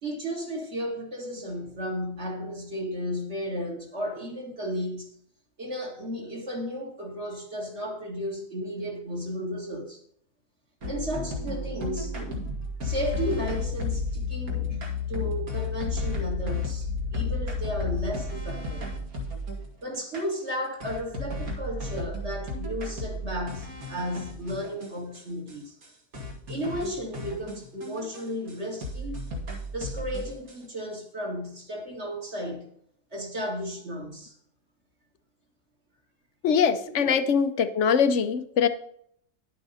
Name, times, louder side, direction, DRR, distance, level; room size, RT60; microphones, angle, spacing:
voice 1, 0.0-5.1 5.6-10.0 10.9-12.2 12.8-18.9 19.8-25.8 26.5-29.2 29.7-32.7 33.1-34.4 36.9-37.1, equal, 45° right, 2.3 m, -34 dB
sound 1, 10.8-19.7 20.1-20.2 20.8-25.2 25.5-25.6 25.8-25.9 26.1-28.5 28.8-30.5, left 3 dB, 65° right, 2.6 m, -33 dB
voice 2, 36.4-38.7, left 6 dB, 55° left, 0.9 m, -22 dB
10.5 x 8.4 x 4.1 m
omnidirectional pair, 1.7 m